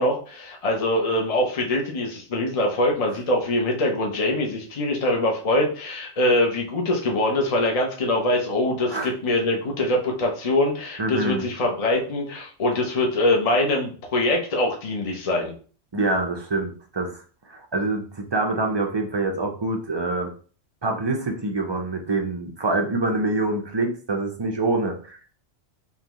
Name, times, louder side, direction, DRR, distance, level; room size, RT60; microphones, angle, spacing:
voice 1, 0.0-15.5, left 1 dB, 35° left, 0 dB, 0.8 m, -23 dB
voice 2, 11.0-11.5 15.9-17.1 17.5-20.3 20.8-25.2, right 2 dB, 30° right, 3 dB, 0.5 m, -25 dB
5.4 x 2.4 x 3.0 m, 0.40 s
omnidirectional pair, 1.2 m